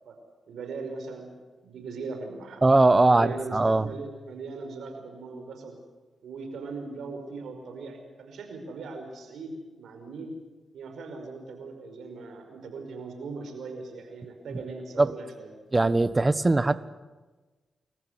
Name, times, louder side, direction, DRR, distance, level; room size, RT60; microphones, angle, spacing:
voice 1, 0.5-1.3 1.6-2.6 3.1-5.8 6.2-10.3 10.7-15.5, right 4 dB, 75° right, 5 dB, 5.3 m, -39 dB
voice 2, 2.6-3.9 15.0-15.1 15.7-16.8, right 2 dB, 30° right, 15 dB, 1.4 m, -20 dB
27.5 x 14.5 x 9.6 m, 1.3 s
supercardioid pair, 40°, 0 cm